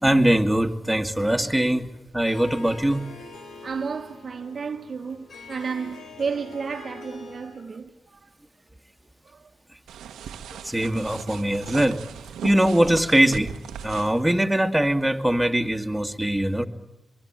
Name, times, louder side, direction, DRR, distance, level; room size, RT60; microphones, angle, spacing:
voice 1, 0.0-3.1 10.6-12.0 12.4-13.5 13.8-16.7, right 1 dB, 5° right, 2.3 m, -22 dB
Harp, 2.3-7.7, left 3 dB, 75° left, 4.7 m, -43 dB
voice 2, 3.6-8.3 9.3-9.5, right 5 dB, 60° right, 1.2 m, -32 dB
sound 1, 9.9-14.2, right 8 dB, 90° right, 1.0 m, -38 dB
23.5 x 23.5 x 9.1 m
supercardioid pair, 40°, 0 cm